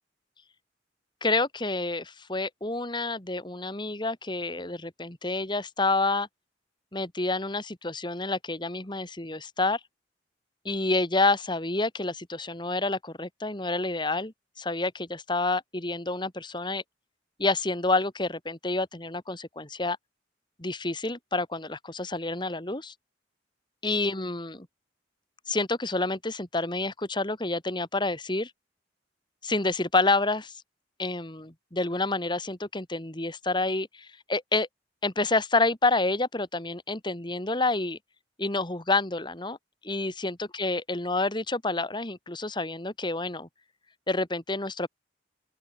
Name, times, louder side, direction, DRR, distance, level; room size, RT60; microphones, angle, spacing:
voice 1, 1.2-6.3 6.9-9.8 10.6-16.8 17.4-20.0 20.6-22.9 23.8-24.7 25.5-28.5 29.4-30.5 31.0-34.7 35.0-38.0 38.4-39.6 39.8-43.5 44.1-44.9, left 2 dB, 25° left, 2.5 m, -28 dB
open air
head